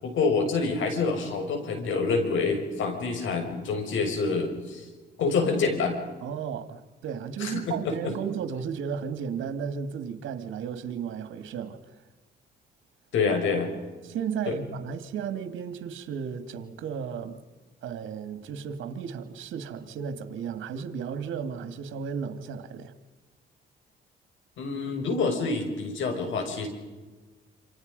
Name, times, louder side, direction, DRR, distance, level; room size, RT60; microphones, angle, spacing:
voice 1, 0.0-4.9 5.2-6.0 7.4-7.7 13.1-13.7 14.5-14.6 24.6-26.7, left 4 dB, 75° left, 6.3 m, -27 dB
voice 2, 6.2-11.8 14.0-17.4 17.8-22.9, right 7 dB, 80° right, 2.1 m, -34 dB
28.5 x 26.5 x 5.4 m
cardioid pair, 90°, 20 cm